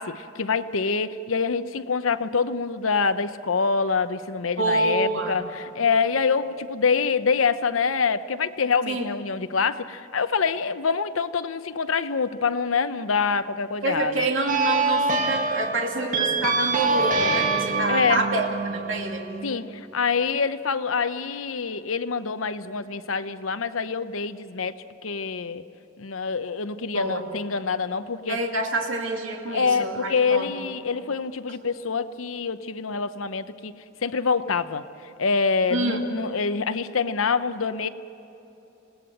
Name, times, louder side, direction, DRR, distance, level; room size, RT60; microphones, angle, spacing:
voice 1, 0.0-14.1 17.9-18.2 19.4-24.7 25.0-25.6 26.0-28.4 29.5-33.7 34.0-34.8 35.2-37.9, left 5 dB, 85° left, 12 dB, 0.8 m, -25 dB
voice 2, 4.6-5.4 8.9-9.1 13.8-19.3 26.9-27.3 28.3-30.5 35.7-36.0, right 2 dB, 70° right, 1 dB, 2.6 m, -27 dB
sound 1, 14.5-19.6, right 3 dB, 40° right, 2.1 m, -25 dB
27.5 x 18.5 x 7.8 m, 3.0 s
head